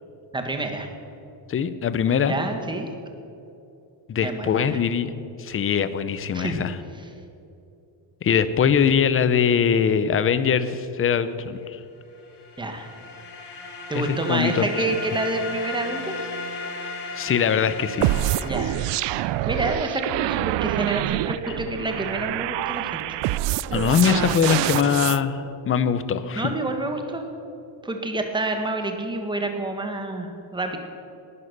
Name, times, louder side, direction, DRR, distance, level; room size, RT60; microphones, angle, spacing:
voice 1, 0.3-0.9 2.3-2.9 4.2-4.8 6.3-6.6 12.6-12.9 13.9-16.3 18.4-18.9 19.1-23.0 26.3-27.2 27.8-30.8, right 2 dB, 10° right, 5 dB, 1.4 m, -28 dB
voice 2, 1.5-2.3 4.1-5.1 5.4-6.8 8.2-11.8 13.9-14.6 17.2-18.3 23.7-26.5, left 7 dB, 30° left, 13 dB, 0.7 m, -22 dB
sound 1, 12.1-19.9, left 3 dB, 65° left, 4.2 m, -36 dB
sound 2, 18.0-25.2, right 15 dB, 70° right, 0.5 m, -26 dB
19.0 x 11.0 x 6.7 m, 2.8 s
cardioid pair, 170°, 44 cm